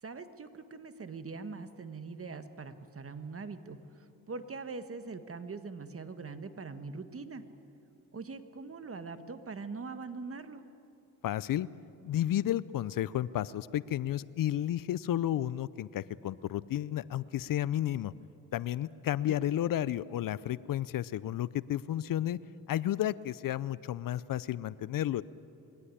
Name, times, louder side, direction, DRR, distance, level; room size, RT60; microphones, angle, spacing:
voice 1, 0.0-7.4 8.1-10.6 19.2-19.3, right 4 dB, 35° right, 10 dB, 1.6 m, -42 dB
voice 2, 11.2-11.7 12.0-18.1 18.5-22.4 22.7-25.2, left 12 dB, 60° left, 19 dB, 0.6 m, -32 dB
22.0 x 17.0 x 9.9 m, 2.7 s
cardioid pair, 70°, 37 cm